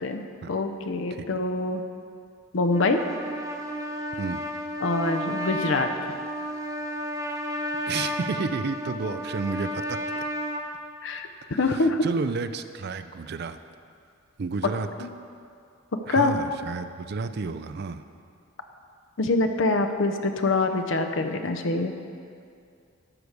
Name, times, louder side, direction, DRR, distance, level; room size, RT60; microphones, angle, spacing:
voice 1, 0.0-1.8 2.5-3.0 4.8-5.9 11.0-12.0 15.0-15.1 16.1-16.4 19.2-21.9, left 2 dB, 70° left, 6 dB, 0.7 m, -25 dB
Trumpet, 2.6-10.6, equal, 15° right, 0.7 m, -32 dB
voice 2, 7.9-10.2 11.8-13.6 14.4-14.9 16.1-18.0, right 4 dB, 55° right, 10 dB, 0.4 m, -31 dB
12.0 x 4.7 x 6.5 m, 2.4 s
head